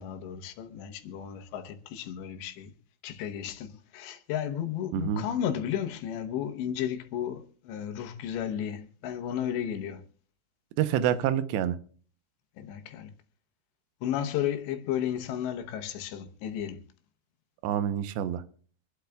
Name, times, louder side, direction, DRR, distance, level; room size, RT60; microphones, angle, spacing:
voice 1, 0.0-2.7 3.0-10.0 12.6-13.1 14.0-16.8, left 10 dB, 85° left, 3.3 m, -33 dB
voice 2, 4.9-5.2 10.8-11.8 17.6-18.4, right 10 dB, 90° right, 3.0 m, -27 dB
26.0 x 12.0 x 2.3 m
omnidirectional pair, 4.9 m